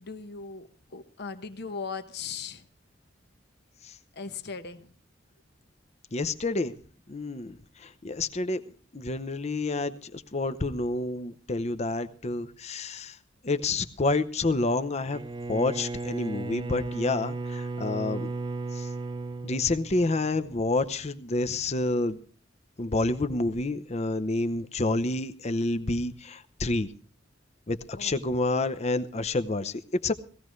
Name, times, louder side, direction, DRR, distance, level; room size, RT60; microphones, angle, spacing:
voice 1, 0.0-2.6 4.2-4.9 28.0-28.1, left 5 dB, 60° left, 9 dB, 1.0 m, -38 dB
voice 2, 6.1-6.7 7.1-7.6 7.8-8.6 8.9-13.2 13.4-15.2 15.5-18.3 18.7-18.9 19.4-22.2 22.8-26.9 27.7-30.1, left 2 dB, 35° left, 13 dB, 0.7 m, -28 dB
Bowed string instrument, 15.0-20.4, right 3 dB, 25° right, 0.5 m, -35 dB
18.0 x 15.0 x 3.2 m, 0.42 s
head